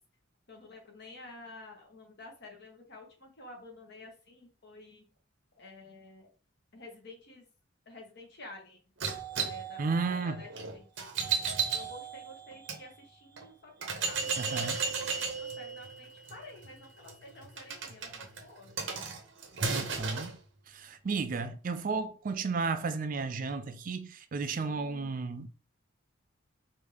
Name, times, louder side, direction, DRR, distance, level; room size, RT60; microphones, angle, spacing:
voice 1, 0.5-5.0 5.6-6.3 6.7-7.4 7.8-8.8 9.4-10.8 11.7-18.7 24.5-25.1, left 2 dB, 55° left, 1.4 m, -50 dB
Classic Pinball Gameplay, 9.0-12.8 13.4-13.5 13.8-20.3, right 5 dB, 65° right, 0.8 m, -35 dB
voice 2, 9.8-10.4 14.4-14.8 19.7-20.4 20.7-25.5, right 4 dB, 40° right, 0.4 m, -33 dB
4.9 x 2.7 x 3.4 m
head